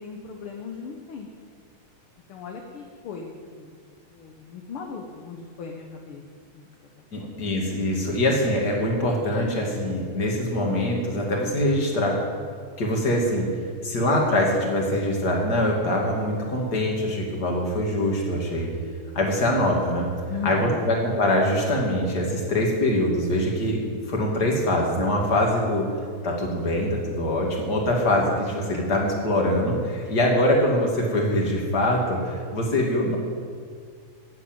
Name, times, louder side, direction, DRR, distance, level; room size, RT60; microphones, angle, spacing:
voice 1, 0.0-1.3 2.3-3.7 4.1-6.2 6.5-6.7 7.2-7.5 20.3-20.9 30.0-30.1, left 6 dB, 60° left, 1 dB, 1.6 m, -37 dB
voice 2, 7.1-12.2 12.8-13.5 13.8-18.7 19.1-20.1 20.4-25.9 26.2-33.2, left 1 dB, 35° left, -1 dB, 2.5 m, -23 dB
14.0 x 7.5 x 8.9 m, 2.1 s
omnidirectional pair, 3.4 m